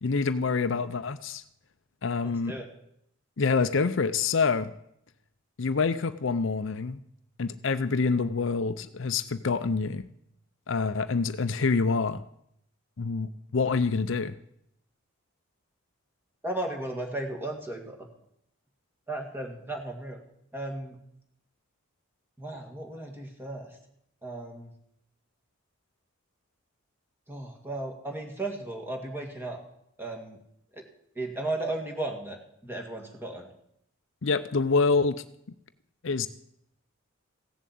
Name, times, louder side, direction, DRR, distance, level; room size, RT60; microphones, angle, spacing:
voice 1, 0.0-1.4 2.0-2.5 3.4-4.7 5.6-7.0 7.4-10.1 10.7-12.2 13.0-14.4 34.2-35.2 36.0-36.3, left 4 dB, 60° left, 12 dB, 0.6 m, -26 dB
voice 2, 2.2-2.7 16.4-18.1 19.1-20.2 20.5-21.0 22.4-23.8 24.2-24.7 27.3-29.6 30.0-30.4 30.7-30.8 31.2-33.5, right 2 dB, 10° right, 2 dB, 2.1 m, -35 dB
16.0 x 7.3 x 8.5 m, 0.76 s
head